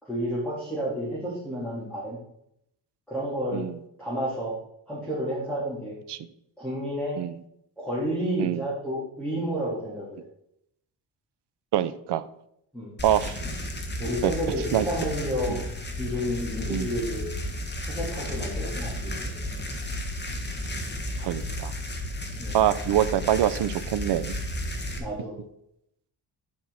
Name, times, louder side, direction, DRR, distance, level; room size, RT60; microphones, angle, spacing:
voice 1, 0.0-2.2 3.1-3.7 4.0-4.6 4.9-5.9 6.6-7.2 7.8-10.1 12.7-12.9 14.0-15.6 16.0-17.2 17.9-19.1 22.4-22.6 25.0-25.3, equal, ahead, -8 dB, 3.6 m, -30 dB
voice 2, 11.7-12.2 13.0-13.4 14.2-14.3 14.7-14.9 16.7-16.9 21.2-21.7 22.5-24.4, right 11 dB, 70° right, 15 dB, 0.7 m, -24 dB
sound 1, 13.0-25.0, left 1 dB, 25° left, 1.7 m, -33 dB
11.0 x 5.6 x 4.3 m, 0.74 s
cardioid pair, 105°, 42 cm